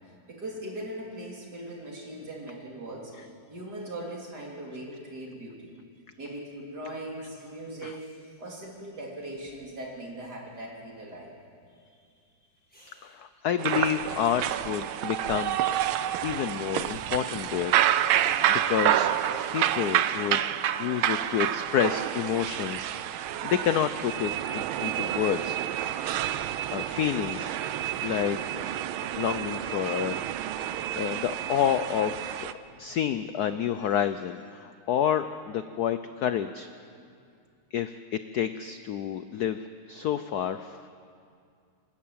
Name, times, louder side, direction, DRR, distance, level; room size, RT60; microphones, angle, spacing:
voice 1, 0.3-5.8 6.2-8.1 8.4-11.3 20.3-20.4 25.8-26.0 29.1-29.2 32.7-32.8 37.0-37.1, right 1 dB, 50° right, -2 dB, 3.9 m, -40 dB
sound 1, 7.1-7.5 7.9-8.4 9.2-9.9 10.2-10.6 11.1-11.2 12.4-13.2 13.7-14.5 14.9-15.0 15.2-17.7 18.1-18.2 18.6-21.8 22.1-23.8 24.2-25.6, equal, 5° left, 7.1 m, -60 dB
voice 2, 13.0-15.6 16.2-19.1 19.5-20.5 20.8-25.6 26.7-27.5 28.0-28.6 29.1-30.2 30.6-32.5 32.8-36.7 37.7-40.9, left 9 dB, 70° left, 11 dB, 0.9 m, -29 dB
sound 2, 13.6-32.5, right 11 dB, 80° right, 1.5 m, -29 dB
28.0 x 12.0 x 8.7 m, 2.3 s
omnidirectional pair, 2.3 m